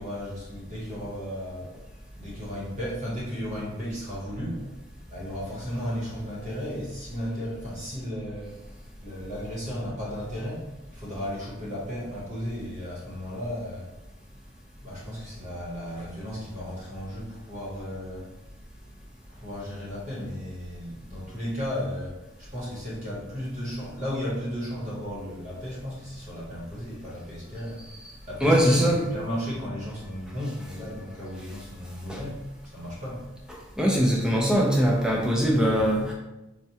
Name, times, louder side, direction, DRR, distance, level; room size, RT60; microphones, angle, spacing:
voice 1, 0.0-1.8 2.2-4.8 5.1-8.6 9.0-13.9 14.8-18.3 19.3-27.8 28.3-32.4 32.7-33.2, equal, 40° right, -6 dB, 1.0 m, -34 dB
voice 2, 28.4-29.0 32.1-32.2 33.8-36.1, equal, 5° right, -2 dB, 0.5 m, -22 dB
4.5 x 2.2 x 2.8 m, 0.98 s
head